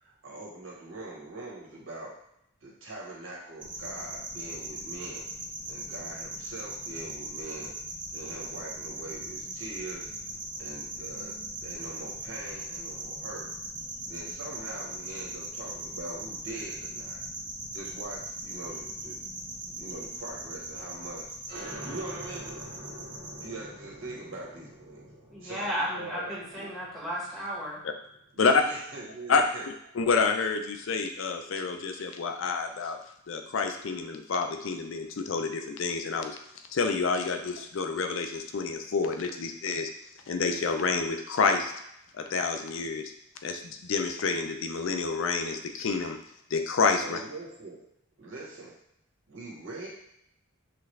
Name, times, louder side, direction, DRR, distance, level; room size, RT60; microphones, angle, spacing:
voice 1, 0.0-2.2 2.6-5.2 5.7-7.7 8.1-10.1 10.6-13.5 14.1-17.2 17.7-19.2 19.8-21.2 21.8-22.5 23.4-25.1 25.4-26.7 28.3-29.6 47.0-47.8 48.2-48.7 49.3-49.9, right 2 dB, 70° right, -4 dB, 1.4 m, -42 dB
sound 1, 3.6-23.5, right 1 dB, 20° right, 0.6 m, -39 dB
sound 2, 21.5-28.7, right 1 dB, 50° right, 1.1 m, -46 dB
voice 2, 25.3-27.9, equal, ahead, -7 dB, 1.2 m, -34 dB
voice 3, 30.0-33.0 33.3-36.4 36.7-39.9 40.3-41.7 42.2-43.1 43.4-46.2 46.5-47.2, left 4 dB, 65° left, 6 dB, 0.4 m, -28 dB
5.8 x 2.4 x 3.2 m, 0.77 s
head